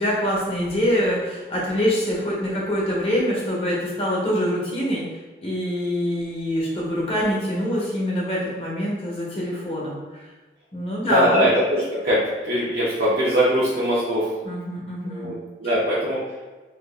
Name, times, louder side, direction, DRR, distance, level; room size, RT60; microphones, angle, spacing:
voice 1, 0.0-5.0 5.4-10.3 10.7-11.5 14.4-15.3 15.6-15.7, equal, 35° left, -5 dB, 0.8 m, -25 dB
voice 2, 11.1-14.3 15.0-15.3 15.6-16.2, equal, 60° right, -9 dB, 0.6 m, -21 dB
3.6 x 2.3 x 2.3 m, 1.3 s
head